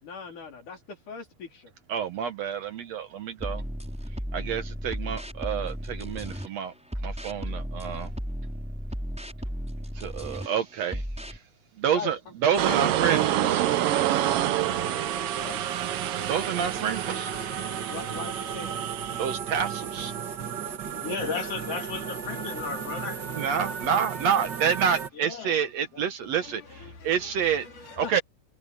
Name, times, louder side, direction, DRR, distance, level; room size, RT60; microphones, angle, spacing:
voice 1, 0.0-1.7 11.9-12.1 12.7-12.9 15.4-15.6 17.9-18.8 26.3-28.2, left 5 dB, 70° left, 5.7 m, -40 dB
voice 2, 1.9-3.6 4.3-6.7 7.0-8.1 10.0-11.4 11.8-13.9 16.0-17.9 18.8-20.2 20.5-20.8 23.4-27.7 28.0-28.2, right 8 dB, 65° right, 2.1 m, -29 dB
sound 1, 3.4-6.5 6.9-10.5 10.9-11.4, equal, ahead, 6.1 m, -34 dB
sound 2, 12.5-25.1, right 6 dB, 40° right, 1.9 m, -34 dB
sound 3, 12.6-19.3, right 13 dB, 80° right, 1.3 m, -28 dB
voice 3, 21.0-23.2 25.1-25.6 25.9-26.0, left 5 dB, 50° left, 3.5 m, -34 dB
omnidirectional pair, 3.7 m